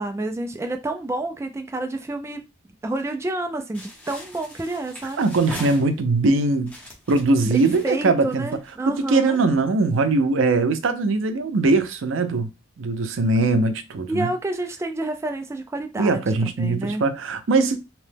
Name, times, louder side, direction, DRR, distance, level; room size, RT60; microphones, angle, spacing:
voice 1, 0.0-2.4 2.8-5.2 7.4-9.4 14.1-16.2 16.6-17.0, right 2 dB, 15° right, 0.3 m, -29 dB
sound 1, 3.7-6.2 6.6-8.9, left 1 dB, 10° left, 0.8 m, -41 dB
voice 2, 5.2-6.7 7.1-8.5 8.9-12.5 12.8-14.3 16.0-17.8, right 3 dB, 75° right, 0.5 m, -21 dB
2.9 x 2.1 x 3.3 m
head